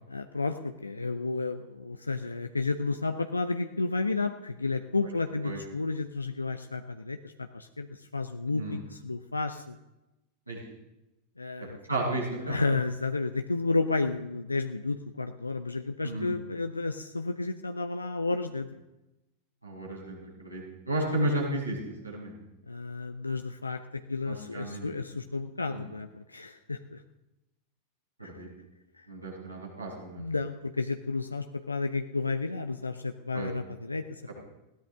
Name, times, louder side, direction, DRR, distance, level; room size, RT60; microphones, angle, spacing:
voice 1, 0.1-9.8 11.4-11.8 12.4-18.7 21.0-21.1 22.7-27.0 28.2-28.4 29.0-29.1 30.2-34.4, left 3 dB, 80° left, 7 dB, 0.7 m, -32 dB
voice 2, 8.5-8.8 10.5-10.6 11.9-12.6 16.0-16.3 19.6-20.6 20.9-21.8 22.0-22.4 24.2-24.9 25.7-25.8 28.2-28.5 29.1-30.2 33.3-33.5, right 1 dB, 85° right, -4 dB, 6.8 m, -33 dB
20.5 x 16.5 x 3.6 m, 0.96 s
figure-of-eight pair, 90°, 0 cm